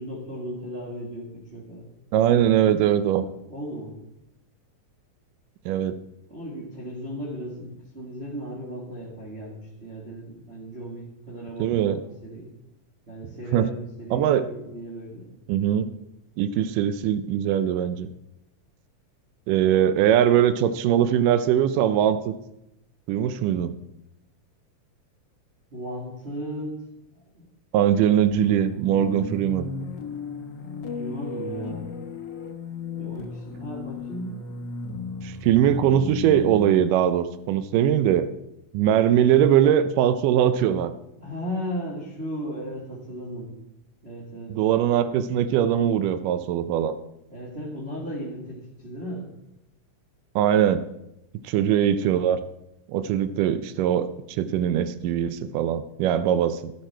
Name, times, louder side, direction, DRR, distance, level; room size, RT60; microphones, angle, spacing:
voice 1, 0.0-1.9 3.5-3.9 6.3-12.0 12.2-12.5 13.1-15.3 25.7-26.8 27.3-27.4 31.0-31.9 33.0-34.4 41.2-43.5 44.0-44.6 47.3-49.3, equal, 20° right, -5 dB, 2.1 m, -36 dB
voice 2, 2.1-3.3 5.7-5.9 11.6-12.0 13.5-13.7 14.1-14.5 15.5-15.9 16.4-18.1 19.5-22.4 23.1-23.7 27.7-29.7 35.2-38.3 38.7-40.9 44.5-46.9 50.4-50.9 51.4-52.4 52.9-56.7, right 10 dB, 85° right, 12 dB, 2.2 m, -21 dB
sound 1, 28.3-38.2, left 4 dB, 65° left, 1.1 m, -36 dB
12.0 x 12.0 x 4.4 m, 0.87 s
omnidirectional pair, 3.7 m